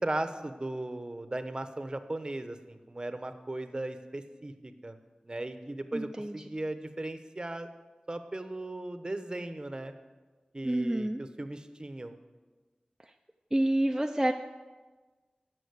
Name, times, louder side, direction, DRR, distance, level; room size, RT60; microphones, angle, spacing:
voice 1, 0.0-4.9 5.2-7.7 8.1-9.9 10.5-12.1, right 2 dB, 30° right, 9 dB, 0.8 m, -37 dB
voice 2, 5.9-6.4 10.6-11.2 13.0-13.1 13.5-14.3, right 1 dB, 10° right, 3 dB, 0.5 m, -28 dB
11.5 x 6.1 x 8.1 m, 1.3 s
wide cardioid pair, 65°, 3 cm